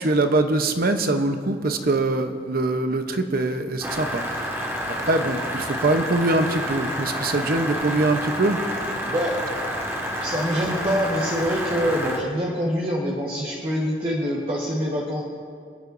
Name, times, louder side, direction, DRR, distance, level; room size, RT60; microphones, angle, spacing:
voice 1, 0.0-4.5 5.1-8.6, right 2 dB, 55° right, 7 dB, 0.9 m, -23 dB
sound 1, 3.8-12.2, equal, 15° right, 1.8 m, -29 dB
voice 2, 9.0-9.4 10.2-15.2, equal, 30° right, -4 dB, 1.3 m, -25 dB
27.0 x 9.7 x 2.6 m, 2.1 s
head